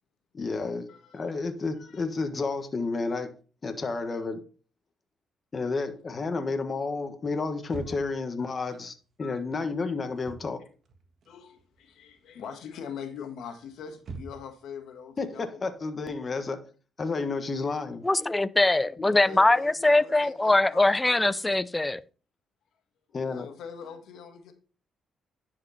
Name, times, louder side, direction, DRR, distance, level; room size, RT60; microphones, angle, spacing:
voice 1, 0.3-0.9 1.1-3.3 3.6-4.4 5.5-10.6 15.2-16.6 17.0-18.0 19.0-19.1 23.1-23.5, left 3 dB, 35° left, 1.3 m, -31 dB
voice 2, 0.9-1.3 1.8-2.0 4.1-4.2 5.6-5.8 8.4-8.5 9.2-9.4 11.3-15.7 19.0-21.4 23.1-24.5, left 7 dB, 75° left, 1.7 m, -43 dB
sound 1, 7.7-8.3 10.1-10.5 10.8-11.8 12.1-12.5 13.2-14.6, right 4 dB, 55° right, 1.6 m, -43 dB
voice 3, 18.0-22.0, left 2 dB, 15° left, 0.4 m, -22 dB
10.5 x 5.0 x 4.2 m
cardioid pair, 90°, 0 cm